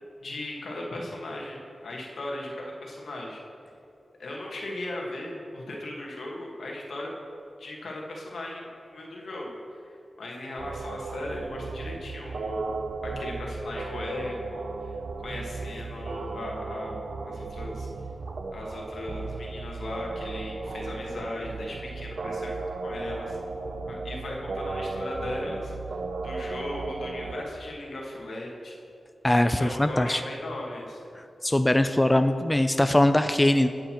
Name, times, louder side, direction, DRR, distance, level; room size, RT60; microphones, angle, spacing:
voice 1, 0.2-3.4 4.2-7.1 7.6-12.7 13.0-17.9 18.5-23.4 23.9-25.7 26.2-28.8 29.6-31.0, left 1 dB, 85° left, -2 dB, 1.4 m, -37 dB
sound 1, 10.6-27.4, right 3 dB, 75° right, 0.5 m, -35 dB
voice 2, 29.2-30.2 31.2-33.7, left 1 dB, 15° left, 9 dB, 0.3 m, -22 dB
11.5 x 7.9 x 3.0 m, 2.7 s
wide cardioid pair, 80°, 0 cm